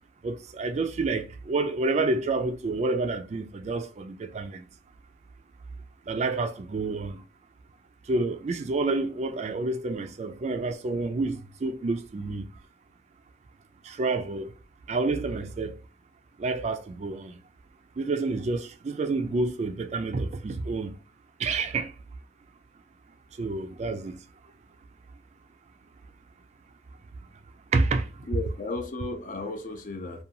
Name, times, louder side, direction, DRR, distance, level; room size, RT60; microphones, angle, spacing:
voice 1, 0.2-4.6 6.1-7.2 8.1-12.5 13.8-14.5 14.9-15.7 16.4-17.4 18.0-21.0 21.4-21.9 23.4-24.2 27.7-28.3, right 3 dB, 35° right, 0.3 m, -29 dB
voice 2, 28.3-30.2, left 2 dB, 45° left, 0.4 m, -34 dB
2.6 x 2.2 x 2.8 m
head